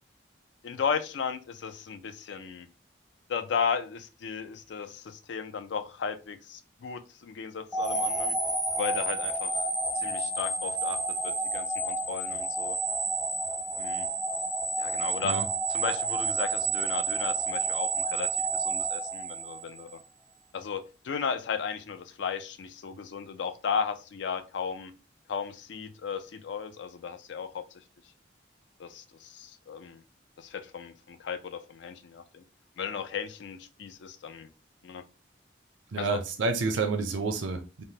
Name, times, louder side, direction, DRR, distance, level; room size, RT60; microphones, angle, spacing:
voice 1, 0.6-2.7 3.3-8.3 8.8-9.6 10.0-11.0 11.2-12.8 13.7-14.1 14.8-15.3 15.7-20.0 20.5-24.9 25.3-27.6 28.8-30.0 30.4-32.4 32.8-34.5 34.8-35.0 36.0-36.2, left 6 dB, 70° left, 0.4 m, -35 dB
sound 1, 7.7-19.9, right 3 dB, ahead, 0.4 m, -30 dB
voice 2, 35.9-37.8, right 4 dB, 80° right, 0.5 m, -29 dB
3.2 x 2.0 x 2.7 m
head